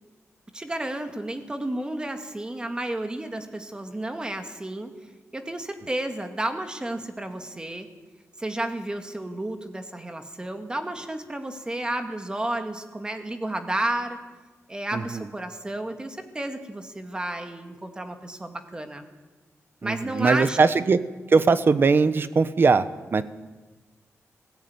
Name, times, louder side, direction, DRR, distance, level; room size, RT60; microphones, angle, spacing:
voice 1, 0.5-4.9 5.3-7.9 8.4-14.2 14.7-19.0 19.8-20.6, right 1 dB, 15° right, 6 dB, 2.1 m, -31 dB
voice 2, 14.9-15.2 19.8-21.0 21.3-23.2, right 4 dB, 45° right, 13 dB, 1.0 m, -20 dB
19.5 x 16.5 x 9.6 m, 1.3 s
wide cardioid pair, 135°, 5 cm